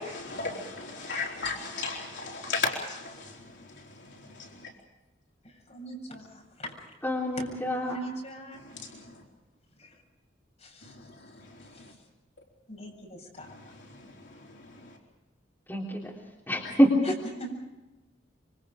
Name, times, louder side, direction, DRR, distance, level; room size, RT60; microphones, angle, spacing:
voice 1, 0.0-4.7 8.5-9.2 10.8-11.9 13.4-15.0 16.6-16.8, left 4 dB, 65° left, -2 dB, 4.1 m, -37 dB
voice 2, 5.4-6.8 7.4-7.5 7.8-8.6 9.8-10.0 10.6-11.1 11.7-12.0 12.7-13.5 17.0-17.6, right 1 dB, 35° left, -1 dB, 7.9 m, -42 dB
voice 3, 7.0-8.0 15.7-16.1 16.5-16.9, equal, 10° left, -3 dB, 3.5 m, -25 dB
26.5 x 24.5 x 5.1 m, 1.1 s
head